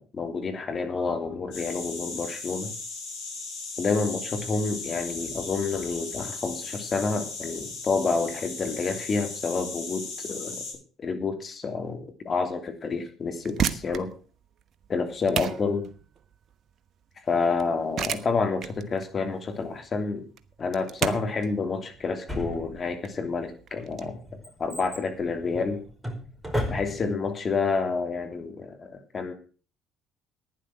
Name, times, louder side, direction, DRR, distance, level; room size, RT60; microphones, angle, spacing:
voice 1, 0.0-2.7 3.8-10.6 11.0-14.1 14.9-15.8 17.2-20.2 20.6-24.2 24.6-25.8 26.7-29.3, left 4 dB, 40° left, 5 dB, 3.1 m, -29 dB
sound 1, 1.5-10.7, left 3 dB, 75° left, 7.8 m, -37 dB
sound 2, 13.3-24.0, right 8 dB, 55° right, 1.1 m, -34 dB
Drawer open or close, 22.3-23.1 23.8-27.3 27.5-27.6, equal, 5° right, 4.9 m, -34 dB
11.5 x 10.0 x 6.0 m, 0.38 s
hypercardioid pair, 60°, 0 cm